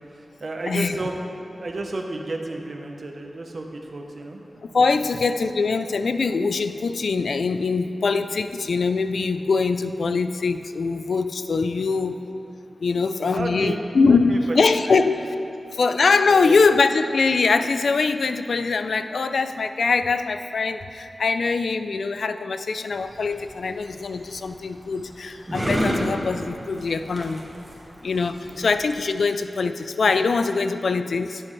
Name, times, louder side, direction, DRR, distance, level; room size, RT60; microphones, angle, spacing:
voice 1, 0.1-5.1 11.7-12.0 13.3-14.4 14.9-15.1 16.3-16.6 28.4-28.7, right 2 dB, 55° right, 2 dB, 0.7 m, -33 dB
voice 2, 4.7-12.2 12.8-15.2 15.7-27.4 28.0-31.4, left 4 dB, 80° left, 10 dB, 0.3 m, -22 dB
sound 1, 22.9-29.0, equal, 15° right, 1.3 m, -31 dB
10.5 x 7.7 x 3.2 m, 2.7 s
wide cardioid pair, 90°, 0 cm